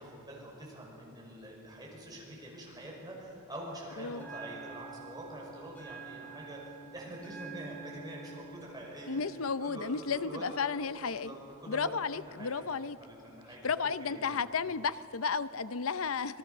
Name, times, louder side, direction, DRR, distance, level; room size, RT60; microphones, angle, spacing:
voice 1, 0.0-9.2 9.6-10.5 11.0-12.5 13.0-14.4, right 1 dB, 20° right, -3 dB, 5.7 m, -46 dB
Bell, 4.1-12.1, right 6 dB, 10° left, 2.8 m, -50 dB
voice 2, 9.1-11.3 11.7-13.0 13.6-16.4, left 5 dB, 70° left, 14 dB, 0.6 m, -33 dB
27.0 x 20.0 x 6.8 m, 2.8 s
head